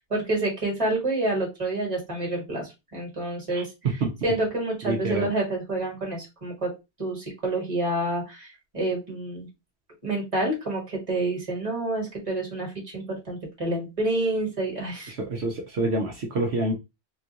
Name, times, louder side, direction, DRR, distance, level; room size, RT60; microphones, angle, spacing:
voice 1, 0.0-3.7 4.2-6.7 7.0-8.5 8.7-9.5 10.0-15.1, right 2 dB, 30° right, -1 dB, 1.4 m, -28 dB
voice 2, 4.9-5.3 15.1-16.7, right 2 dB, 70° right, 0 dB, 1.0 m, -27 dB
3.7 x 2.3 x 2.8 m, 0.24 s
omnidirectional pair, 1.1 m